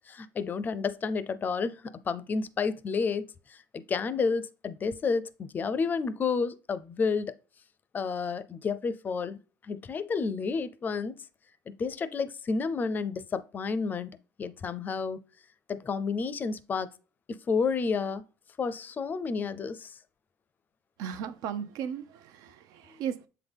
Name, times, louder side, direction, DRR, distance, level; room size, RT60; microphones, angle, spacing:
voice 1, 0.1-7.3 7.9-9.4 9.6-11.1 11.7-14.1 14.4-15.2 15.7-16.9 17.3-18.2 18.6-19.9, left 5 dB, 30° left, 0.5 m, -30 dB
voice 2, 21.0-23.3, right 8 dB, 70° right, 0.7 m, -36 dB
7.6 x 4.0 x 3.4 m
cardioid pair, 130°, 6 cm